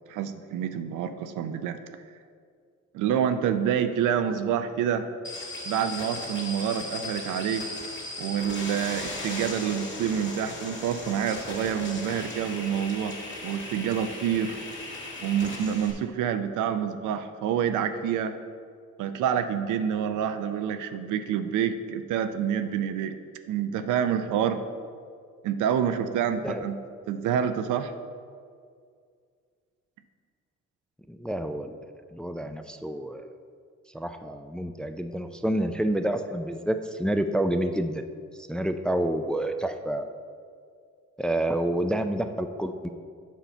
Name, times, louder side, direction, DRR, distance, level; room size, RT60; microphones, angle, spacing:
voice 1, 0.1-1.8 2.9-5.1 5.7-7.7 8.2-14.6 15.2-18.4 19.0-23.1 23.5-24.6 25.4-26.8 27.1-27.9, right 8 dB, 85° right, 9 dB, 0.5 m, -27 dB
sound 1, 5.2-15.9, left 2 dB, 40° left, 1.9 m, -37 dB
voice 2, 31.1-31.7 32.1-33.3 33.9-38.0 38.4-40.1 41.2-42.9, right 1 dB, 5° left, 7 dB, 0.3 m, -28 dB
7.3 x 5.5 x 4.4 m, 2.2 s
cardioid pair, 90°, 30 cm